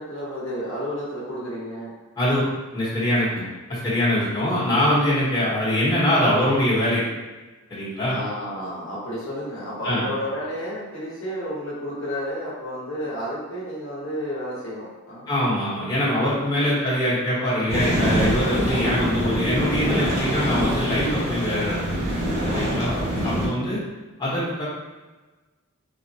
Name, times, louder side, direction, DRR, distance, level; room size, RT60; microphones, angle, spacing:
voice 1, 0.0-1.9 3.3-3.5 8.1-15.3 16.8-16.9 22.7-23.1, equal, 60° left, -7 dB, 0.9 m, -31 dB
voice 2, 2.7-7.0 7.7-8.2 9.8-10.1 15.3-21.8 22.5-22.9 23.2-23.8 24.2-24.7, left 1 dB, 20° left, -10 dB, 0.9 m, -23 dB
sound 1, 17.7-23.5, equal, 30° right, 0.8 m, -24 dB
3.3 x 2.1 x 2.6 m, 1.2 s
head